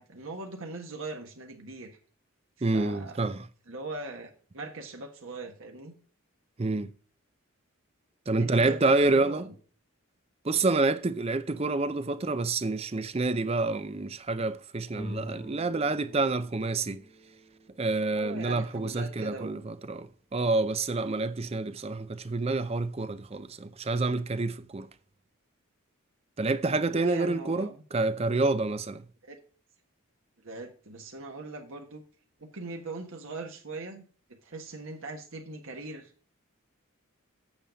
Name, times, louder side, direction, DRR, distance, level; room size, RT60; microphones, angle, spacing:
voice 1, 0.0-2.0 2.6-3.2 3.7-5.9 8.4-9.5 18.1-19.6 26.9-27.8 28.0-28.3 29.2-29.4 30.4-32.0 32.4-34.0 34.3-36.1, right 3 dB, 65° right, 1.4 m, -41 dB
voice 2, 2.6-3.5 6.6-6.9 8.3-9.5 10.4-17.0 17.8-24.9 26.4-29.0, right 3 dB, 25° right, 0.5 m, -28 dB
sound 1, 14.9-18.5, equal, 75° left, 2.8 m, -43 dB
8.7 x 7.2 x 5.1 m
head